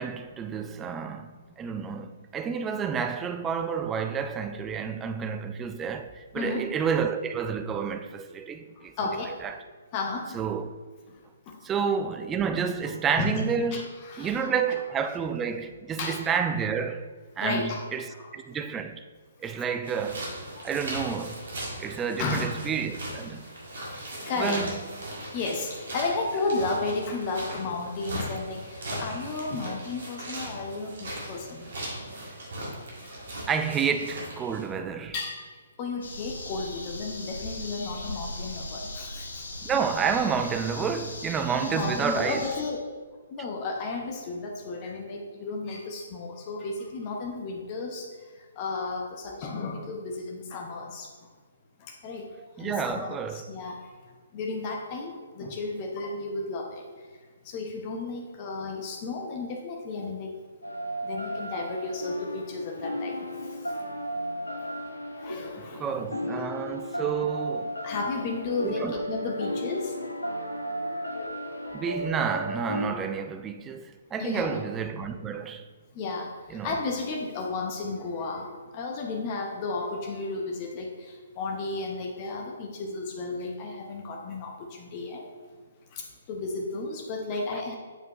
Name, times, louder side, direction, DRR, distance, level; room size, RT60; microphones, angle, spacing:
voice 1, 0.0-8.9 9.4-9.6 10.3-10.7 11.6-13.9 14.2-17.1 17.4-19.0 19.4-20.3 20.6-21.5 21.8-23.5 24.4-24.8 33.5-35.1 39.6-42.5 52.6-53.5 65.6-67.8 68.6-69.0 71.7-75.6 76.5-76.8, right 6 dB, 15° right, 0.3 m, -30 dB
voice 2, 6.3-6.7 8.8-9.4 9.9-10.4 11.1-11.2 11.5-11.6 13.2-13.4 13.7-14.5 16.0-16.2 17.4-17.9 18.2-18.3 20.5-20.7 22.2-22.6 24.3-24.6 25.3-31.7 33.0-33.2 35.1-35.5 35.8-39.4 41.5-42.8 43.3-48.1 48.3-51.1 51.8-52.3 52.6-53.8 54.3-56.8 57.4-60.4 61.0-63.8 65.1-66.2 67.8-70.0 74.2-74.6 75.9-85.3 85.9-87.8, left 3 dB, 30° left, 0.8 m, -33 dB
sound 1, 19.8-34.7, right 1 dB, 55° right, 1.8 m, -38 dB
sound 2, 36.0-42.7, left 2 dB, 55° left, 1.1 m, -39 dB
sound 3, 60.6-72.9, equal, 80° left, 0.9 m, -34 dB
7.9 x 4.5 x 3.0 m
figure-of-eight pair, 130°, 0 cm